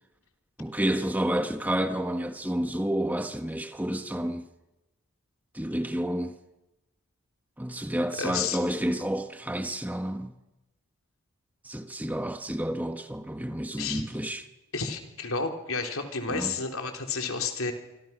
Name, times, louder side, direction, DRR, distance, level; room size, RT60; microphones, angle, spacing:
voice 1, 0.6-4.5 5.5-6.4 7.6-10.3 11.6-14.4 16.3-16.5, right 1 dB, 5° right, 1.0 m, -30 dB
voice 2, 8.2-8.6 13.8-14.0 14.7-17.7, left 4 dB, 75° left, 3.4 m, -31 dB
26.5 x 26.0 x 5.9 m
head